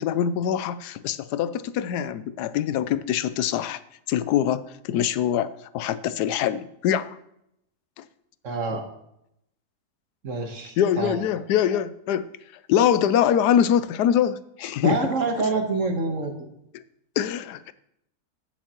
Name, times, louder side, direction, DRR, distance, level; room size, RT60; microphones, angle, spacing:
voice 1, 0.0-3.8 4.1-7.2 8.0-8.1 10.8-12.3 12.7-15.0 17.2-17.7, left 9 dB, 90° left, 15 dB, 1.2 m, -24 dB
voice 2, 8.4-8.9 10.2-11.2 14.8-16.3, right 3 dB, 55° right, 4 dB, 1.6 m, -26 dB
15.0 x 7.2 x 3.0 m, 0.78 s
omnidirectional pair, 1.7 m